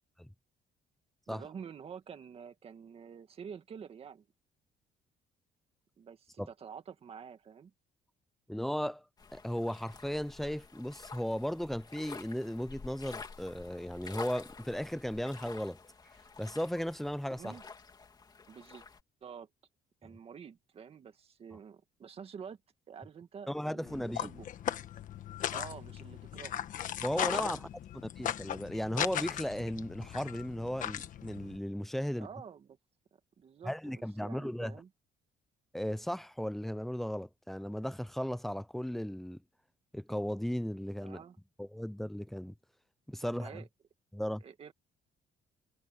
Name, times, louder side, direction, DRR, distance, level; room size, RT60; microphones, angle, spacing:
voice 1, 1.3-4.3 6.0-7.7 17.3-17.6 18.5-18.8 19.2-19.5 20.0-22.6 22.9-24.5 25.5-26.6 27.4-27.7 32.2-32.8 33.4-34.9 41.0-41.4 43.2-43.7 44.4-44.7, right 7 dB, 35° right, 2.0 m, -48 dB
voice 2, 8.5-9.0 9.3-15.8 16.4-17.6 23.5-24.3 27.0-27.7 28.2-32.3 33.6-34.8 35.7-39.4 39.9-41.2 41.6-42.5 43.1-43.6 44.1-44.4, equal, ahead, 0.4 m, -36 dB
sound 1, 9.2-19.0, left 4 dB, 25° left, 3.1 m, -50 dB
sound 2, 23.9-31.6, left 10 dB, 50° left, 1.3 m, -38 dB
cardioid pair, 175°, 18 cm